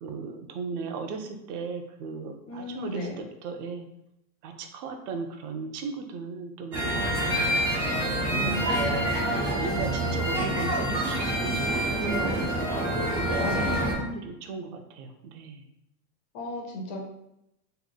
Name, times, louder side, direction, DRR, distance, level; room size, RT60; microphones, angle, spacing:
voice 1, 0.0-3.9 4.4-7.6 8.3-9.3 9.5-12.5 13.2-15.6, right 4 dB, 70° right, 5 dB, 0.7 m, -37 dB
voice 2, 2.5-3.1 8.3-9.2 13.4-14.1 16.3-17.0, left 1 dB, 35° left, 0 dB, 0.5 m, -36 dB
sound 1, 6.7-13.9, right 1 dB, 25° right, 0.3 m, -27 dB
3.2 x 2.2 x 3.8 m, 0.83 s
supercardioid pair, 175°, 49 cm